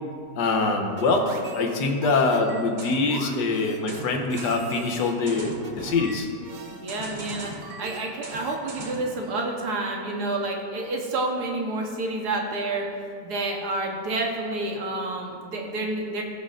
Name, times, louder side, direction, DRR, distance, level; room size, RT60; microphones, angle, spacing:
voice 1, 0.4-1.3 1.5-6.3, left 3 dB, 80° left, 3 dB, 1.5 m, -24 dB
sound 1, 1.0-9.1, right 3 dB, 40° right, 0.7 m, -39 dB
voice 2, 6.7-7.5 7.8-12.8 13.2-16.2, right 2 dB, 70° right, 0 dB, 1.7 m, -29 dB
18.5 x 6.2 x 2.6 m, 2.1 s
omnidirectional pair, 1.8 m